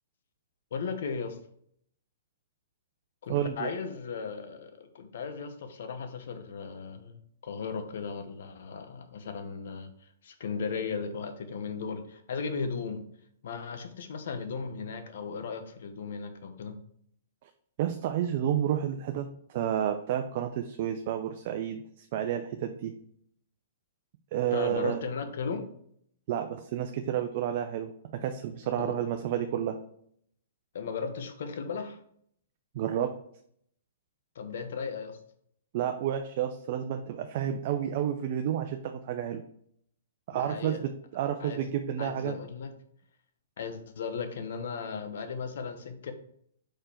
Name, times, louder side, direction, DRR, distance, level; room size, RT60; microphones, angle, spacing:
voice 1, 0.7-1.4 3.2-9.9 10.2-13.0 13.4-16.7 24.5-25.6 28.8-28.9 30.7-32.0 34.3-35.2 40.3-40.8 41.4-41.7 42.0-42.7 43.6-46.1, left 5 dB, 65° left, 7 dB, 1.0 m, -36 dB
voice 2, 3.3-3.7 17.8-22.9 24.3-25.0 26.3-27.9 28.2-29.8 32.7-33.1 35.7-39.4 40.3-42.3, right 10 dB, 50° right, 6 dB, 0.6 m, -30 dB
5.2 x 4.4 x 4.4 m, 0.66 s
hypercardioid pair, 135°, 0 cm